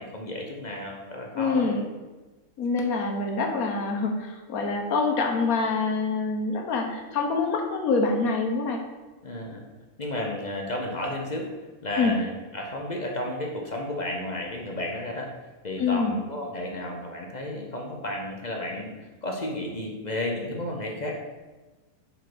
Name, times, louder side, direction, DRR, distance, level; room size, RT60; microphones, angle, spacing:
voice 1, 0.0-1.7 9.2-9.6 10.0-11.5 11.8-15.3 15.6-18.9 19.2-21.2, left 1 dB, 35° left, 0 dB, 0.8 m, -32 dB
voice 2, 1.3-1.9 2.6-8.8 12.0-12.2 15.8-16.2, left 4 dB, 75° left, 3 dB, 1.4 m, -25 dB
5.2 x 4.9 x 6.0 m, 1.2 s
omnidirectional pair, 1.6 m